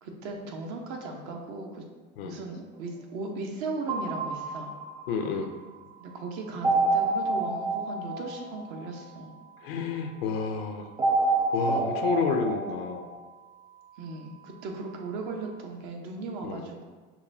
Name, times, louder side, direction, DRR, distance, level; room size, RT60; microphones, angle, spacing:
voice 1, 0.0-1.8 2.2-4.7 6.0-9.3 14.0-16.9, right 3 dB, 60° right, 2 dB, 0.8 m, -37 dB
sound 1, 3.9-5.6 6.6-9.2 11.0-13.1, right 3 dB, 15° right, 0.3 m, -28 dB
sound 2, 4.8-15.5, right 10 dB, 45° right, 1.3 m, -55 dB
voice 2, 5.1-5.5 9.6-10.9 11.5-13.0 16.4-16.6, left 5 dB, 80° left, 5 dB, 0.5 m, -30 dB
5.7 x 2.2 x 2.6 m, 1.4 s
hypercardioid pair, 85°, 29 cm